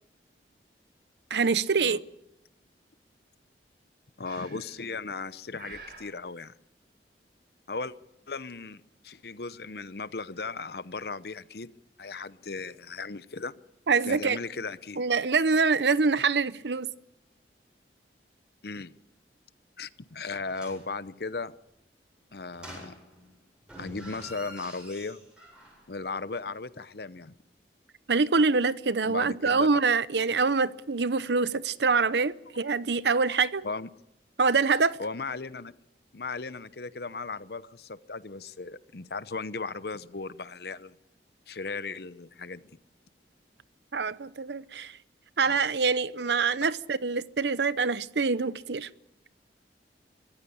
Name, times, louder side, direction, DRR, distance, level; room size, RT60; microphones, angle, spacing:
voice 1, 1.3-2.0 13.9-14.4 15.0-16.9 28.1-33.7 34.4-35.0 43.9-44.9 45.4-48.9, right 4 dB, 75° right, 0.8 m, -25 dB
voice 2, 4.2-6.5 7.7-7.9 8.3-11.7 12.0-13.5 14.0-15.0 18.6-19.0 19.8-21.5 22.3-22.9 23.8-25.2 25.9-27.3 29.0-29.7 33.6-33.9 35.0-35.7 36.1-40.9 41.5-42.6 45.5-45.6, left 4 dB, 60° left, 0.8 m, -37 dB
Breathing, 4.2-4.9 5.5-6.1, right 4 dB, 55° right, 7.1 m, -47 dB
sound 1, 20.4-20.9 22.5-23.3 23.6-25.9 26.2-26.3, equal, 5° right, 7.8 m, -46 dB
24.0 x 15.5 x 8.6 m
head